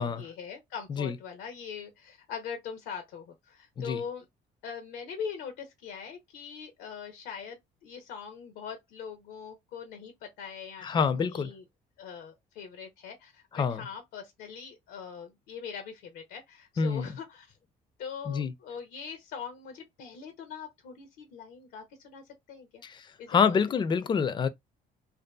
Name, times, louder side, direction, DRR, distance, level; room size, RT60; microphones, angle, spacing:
voice 1, 0.0-4.2 4.6-11.6 12.0-17.5 18.0-22.2 22.5-22.8 23.2-23.8, left 7 dB, 90° left, 0.6 m, -42 dB
voice 2, 10.8-11.5 13.6-13.8 16.8-17.1 18.3-18.5 23.3-24.5, left 6 dB, 25° left, 0.4 m, -26 dB
2.6 x 2.3 x 2.2 m
cardioid pair, 110°, 17 cm